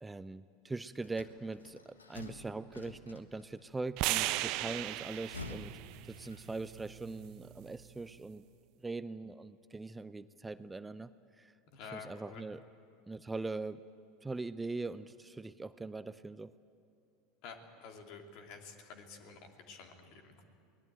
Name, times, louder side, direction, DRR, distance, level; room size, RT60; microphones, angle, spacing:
voice 1, 0.0-5.8 6.1-8.4 8.8-11.1 11.4-11.5 12.0-12.6 13.1-13.8 14.2-16.5, right 3 dB, 15° right, 14 dB, 0.6 m, -41 dB
sound 1, 1.0-3.6 4.9-6.7, left 3 dB, 90° left, 1.4 m, -49 dB
sound 2, 4.0-8.2, right 17 dB, 55° right, 0.7 m, -38 dB
voice 2, 11.7-12.5 17.4-20.4, left 5 dB, 55° left, 4 dB, 2.8 m, -50 dB
23.0 x 19.0 x 9.1 m, 2.4 s
hypercardioid pair, 80°, 0 cm